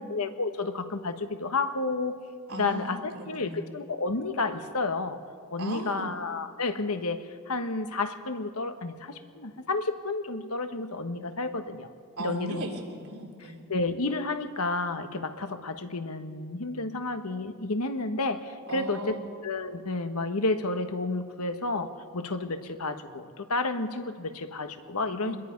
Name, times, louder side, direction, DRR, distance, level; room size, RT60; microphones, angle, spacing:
voice 1, 0.0-2.2 2.5-5.2 5.5-11.9 12.2-12.6 13.7-19.2 19.4-25.4, left 3 dB, 85° left, 7 dB, 1.4 m, -31 dB
voice 2, 2.5-3.6 5.6-6.1 12.2-13.6 18.7-19.2 25.2-25.4, right 1 dB, 75° right, 1 dB, 3.6 m, -37 dB
27.0 x 21.5 x 5.3 m, 2.1 s
head